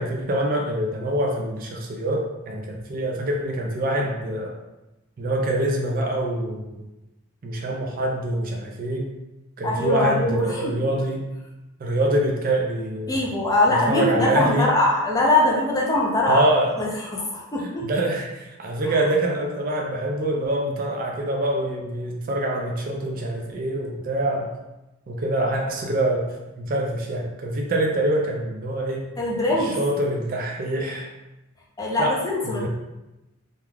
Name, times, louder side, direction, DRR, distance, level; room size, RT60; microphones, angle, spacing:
voice 1, 0.0-4.6 5.2-6.8 7.4-9.1 9.6-11.3 11.8-13.1 13.7-14.7 16.3-16.8 17.6-24.5 25.1-29.1 29.8-31.1 32.0-32.2 32.4-32.7, right 1 dB, 40° right, 0 dB, 0.3 m, -25 dB
voice 2, 9.6-10.8 13.1-16.4 16.8-17.9 18.8-19.0 29.2-29.8 31.8-32.7, left 1 dB, 15° left, -4 dB, 0.5 m, -22 dB
2.3 x 2.2 x 3.2 m, 0.98 s
head